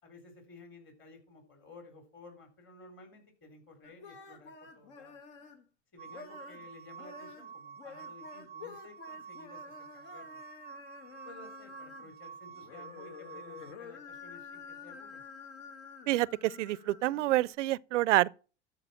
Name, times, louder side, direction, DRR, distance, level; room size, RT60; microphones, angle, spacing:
voice 1, 0.0-5.2 5.9-10.4 11.2-15.2, left 3 dB, 35° left, 4.1 m, -54 dB
sound 1, 3.8-5.6 6.1-6.7 6.9-12.2 12.5-17.5, left 5 dB, 65° left, 2.2 m, -50 dB
sound 2, 6.0-13.7, right 7 dB, 30° right, 0.4 m, -49 dB
voice 2, 16.1-18.3, right 16 dB, 85° right, 0.5 m, -27 dB
12.5 x 5.0 x 5.7 m
hypercardioid pair, 100°, 35 cm